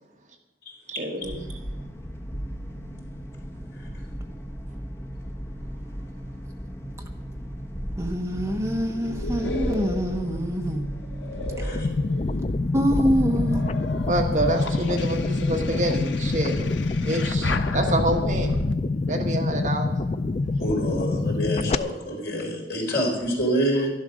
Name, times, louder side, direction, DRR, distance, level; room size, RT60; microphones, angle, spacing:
voice 1, 0.9-1.4 14.1-16.7 17.0-18.6 19.1-19.9, right 1 dB, 40° right, 2 dB, 1.5 m, -27 dB
sound 1, 1.2-20.9, equal, 15° left, 0.9 m, -36 dB
voice 2, 8.0-10.9 11.6-11.8 12.7-13.6, equal, 15° right, 3 dB, 1.0 m, -25 dB
sound 2, 8.3-12.6 13.1-18.7, left 2 dB, 85° left, 0.9 m, -34 dB
sound 3, 11.8-21.8, left 3 dB, 35° left, 0.4 m, -26 dB
voice 3, 20.6-23.9, equal, 60° left, -1 dB, 4.3 m, -26 dB
12.0 x 11.5 x 6.4 m, 1.1 s
head